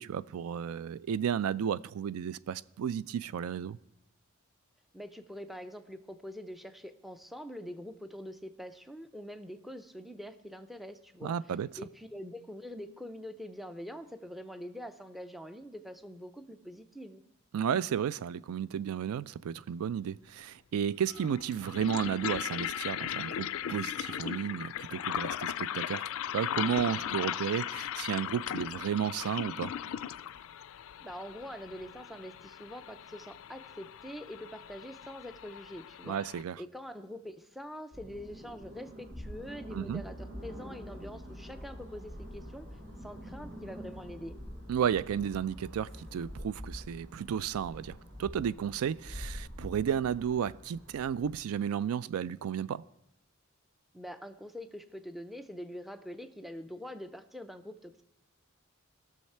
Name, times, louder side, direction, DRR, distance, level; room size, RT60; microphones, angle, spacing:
voice 1, 0.0-3.8 11.2-11.7 17.5-26.0 26.3-29.7 36.0-36.6 39.7-40.0 44.7-52.8, right 8 dB, 85° right, 0.3 m, -33 dB
voice 2, 4.9-11.3 11.8-17.2 27.3-27.4 31.0-36.2 36.6-44.4 53.9-58.0, equal, ahead, 0.4 m, -44 dB
sound 1, 20.1-20.2 21.0-36.4, left 10 dB, 65° left, 0.3 m, -38 dB
sound 2, 37.9-51.3, equal, 60° right, 3.7 m, -45 dB
16.5 x 6.5 x 4.3 m
head